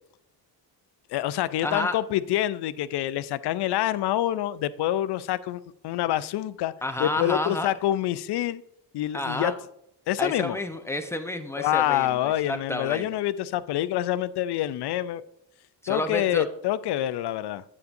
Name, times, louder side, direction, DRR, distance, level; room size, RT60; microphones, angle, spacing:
voice 1, 1.1-6.7 7.0-8.6 8.9-9.5 10.1-10.6 11.6-15.2 15.9-17.6, left 13 dB, 60° left, 16 dB, 0.5 m, -26 dB
voice 2, 1.6-2.0 6.8-7.7 9.1-9.5 10.2-13.1 15.8-16.4, left 2 dB, 5° left, 6 dB, 0.9 m, -30 dB
8.4 x 6.8 x 2.6 m, 0.77 s
supercardioid pair, 55°, 46 cm